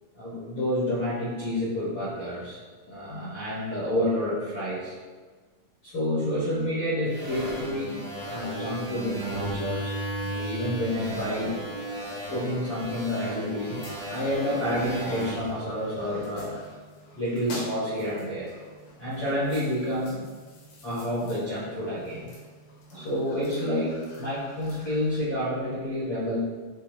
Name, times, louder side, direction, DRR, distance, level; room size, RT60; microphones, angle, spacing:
voice 1, 0.1-4.9 5.8-8.0 8.3-11.6 12.3-16.6 17.1-18.5 19.0-20.3 20.8-22.3 22.9-26.4, left 1 dB, 70° left, -10 dB, 1.4 m, -29 dB
sound 1, 7.1-16.6, right 1 dB, 60° right, 2.2 m, -35 dB
sound 2, 13.8-25.2, left 1 dB, 90° left, 3.0 m, -47 dB
7.2 x 2.4 x 3.0 m, 1.4 s
omnidirectional pair, 4.3 m